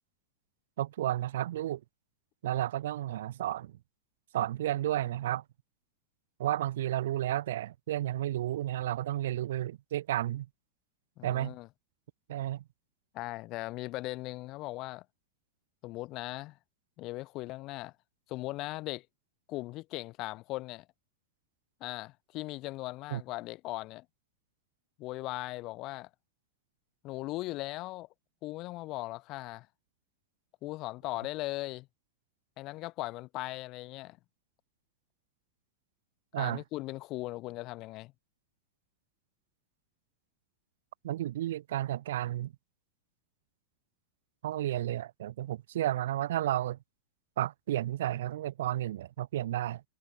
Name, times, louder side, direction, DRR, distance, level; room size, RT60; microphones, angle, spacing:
voice 1, 0.8-1.8 2.4-3.7 4.3-5.4 6.4-10.5 11.2-11.5 12.3-12.6 23.1-23.2 36.3-36.6 41.0-42.5 44.4-46.8 47.4-49.8, right 13 dB, 60° right, 0.5 m, -32 dB
voice 2, 11.2-11.7 13.1-15.0 15.8-16.6 17.0-17.9 18.3-19.1 19.5-20.9 21.8-24.1 25.0-26.1 27.0-28.1 28.4-29.7 30.6-31.9 32.6-34.2 36.3-38.1, left 19 dB, 40° left, 2.4 m, -38 dB
figure-of-eight pair, 90°, 0 cm